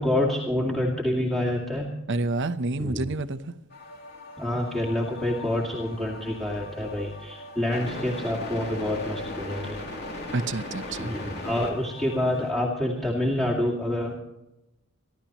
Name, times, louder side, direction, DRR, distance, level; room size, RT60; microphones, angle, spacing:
voice 1, 0.0-1.9 2.8-3.0 4.4-9.8 10.9-14.2, left 1 dB, ahead, 2.2 m, -27 dB
voice 2, 2.1-3.5 10.3-11.1, right 2 dB, 60° right, 0.9 m, -28 dB
sound 1, 3.7-12.5, left 1 dB, 50° left, 3.0 m, -38 dB
28.0 x 12.0 x 3.0 m
head